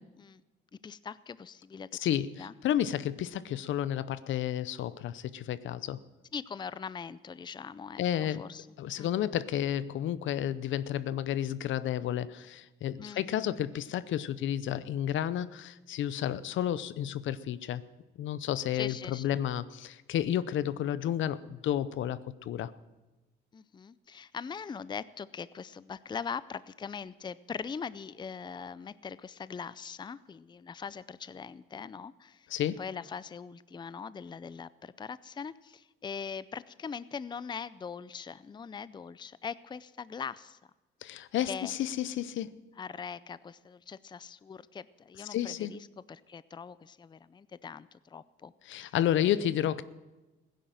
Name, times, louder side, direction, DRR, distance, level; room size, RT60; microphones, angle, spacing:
voice 1, 0.8-1.9 2.4-2.5 6.3-8.7 9.0-9.1 13.0-13.2 18.7-19.4 23.5-32.5 32.8-40.6 41.5-41.7 42.8-48.5 48.8-48.9, left 6 dB, 20° left, 17 dB, 0.5 m, -41 dB
voice 2, 1.9-6.0 8.0-8.5 8.8-17.8 18.2-22.7 32.5-32.8 41.0-42.6 45.2-45.7 48.6-49.8, left 11 dB, 75° left, 16 dB, 0.7 m, -31 dB
16.0 x 10.5 x 7.6 m, 1.1 s
cardioid pair, 90°, 20 cm